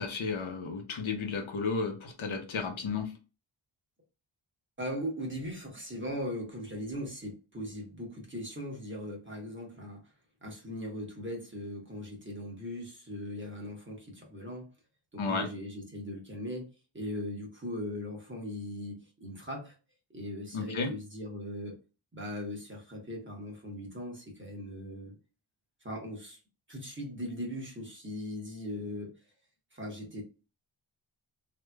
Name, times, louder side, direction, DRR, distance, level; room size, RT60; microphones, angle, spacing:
voice 1, 0.0-3.1 15.2-15.5 20.5-20.9, left 4 dB, 70° left, 4 dB, 0.9 m, -33 dB
voice 2, 4.8-10.1 10.4-14.7 15.1-16.7 16.9-19.8 20.1-21.8 22.1-25.1 25.8-26.4 26.7-29.1 29.7-30.2, left 1 dB, 25° right, 0 dB, 1.1 m, -39 dB
3.2 x 2.9 x 2.2 m, 0.31 s
wide cardioid pair, 135°, 49 cm